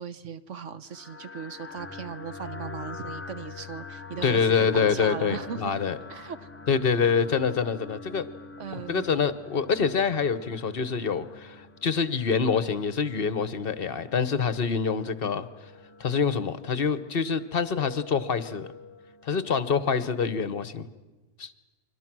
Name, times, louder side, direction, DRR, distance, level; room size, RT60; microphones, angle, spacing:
voice 1, 0.0-5.7 6.1-6.5 8.6-9.1, right 7 dB, 50° right, 12 dB, 1.2 m, -38 dB
sound 1, 0.9-20.6, left 4 dB, 15° left, 0.5 m, -45 dB
voice 2, 4.2-6.0 6.7-8.3 8.7-15.5 16.0-18.7 19.2-20.9 21.4-21.5, left 6 dB, 40° left, 13 dB, 1.0 m, -26 dB
29.5 x 24.0 x 6.1 m, 1.2 s
omnidirectional pair, 1.7 m